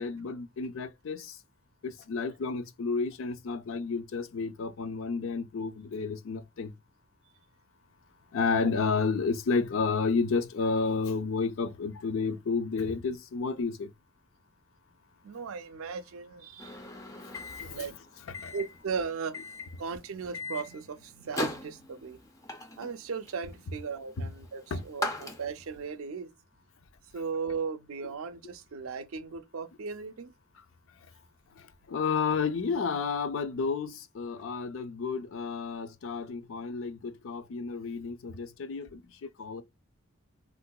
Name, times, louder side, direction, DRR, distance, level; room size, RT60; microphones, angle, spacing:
voice 1, 0.0-1.4 1.8-6.7 8.3-13.9 17.5-17.9 18.4-18.5 24.2-24.3 24.7-24.9 31.9-39.0 39.4-39.6, left 4 dB, 70° left, 0.4 m, -31 dB
voice 2, 15.2-16.8 17.6-18.0 18.5-22.2 22.8-26.3 27.1-30.3, right 5 dB, 80° right, 0.5 m, -37 dB
Microwave oven, 16.6-25.8, left 2 dB, 15° left, 0.5 m, -40 dB
3.6 x 2.4 x 2.2 m
head